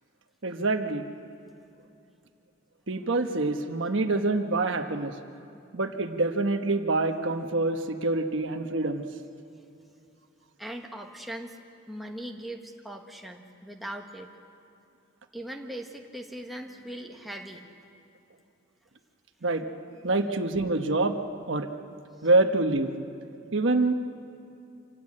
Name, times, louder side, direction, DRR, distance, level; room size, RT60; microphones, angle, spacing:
voice 1, 0.4-1.0 2.9-5.1 5.7-9.0 19.4-19.6 20.0-21.2 21.5-21.7 22.2-22.9 23.5-23.9, right 2 dB, 65° right, 6 dB, 1.2 m, -26 dB
voice 2, 10.6-11.6 11.9-14.3 15.3-17.7 19.9-20.1, right 1 dB, ahead, 1 dB, 1.2 m, -40 dB
26.0 x 16.5 x 8.7 m, 2.7 s
head